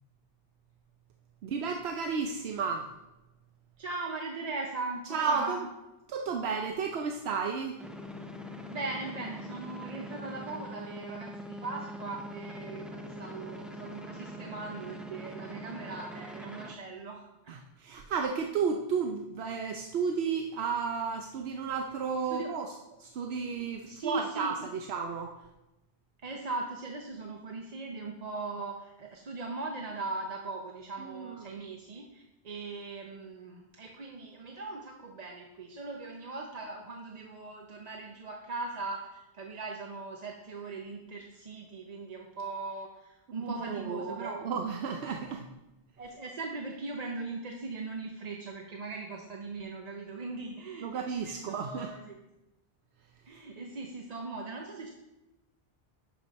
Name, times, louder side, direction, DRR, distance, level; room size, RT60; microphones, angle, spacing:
voice 1, 1.4-2.9 5.1-5.7 6.1-7.8 17.5-22.7 23.0-24.6 24.9-25.3 31.0-31.6 43.4-45.5 50.8-51.9, right 5 dB, 85° right, 3 dB, 0.9 m, -33 dB
voice 2, 3.8-5.6 8.7-17.6 22.3-22.5 23.8-24.5 26.2-44.4 46.0-52.2 53.3-54.9, right 3 dB, 45° right, 1 dB, 0.8 m, -39 dB
sound 1, 7.8-16.7, equal, ahead, 0.4 m, -43 dB
11.0 x 5.0 x 4.1 m, 1.0 s
omnidirectional pair, 1.0 m